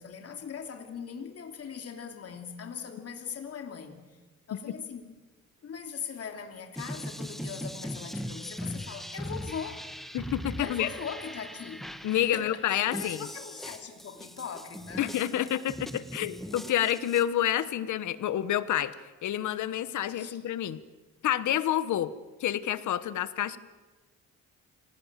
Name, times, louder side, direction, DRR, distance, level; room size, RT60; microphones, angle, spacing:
voice 1, 0.0-4.2 4.5-5.2 5.6-9.9 10.6-11.9 12.3-15.6 20.1-20.4, left 7 dB, 50° left, 4 dB, 3.0 m, -40 dB
sound 1, 6.8-17.2, equal, ahead, 1.7 m, -40 dB
voice 2, 10.1-10.9 12.0-13.2 15.0-18.9 19.2-20.8 21.2-22.1 22.4-23.6, left 11 dB, 75° left, 14 dB, 1.3 m, -28 dB
27.0 x 19.0 x 7.5 m, 1.2 s
cardioid pair, 90°, 30 cm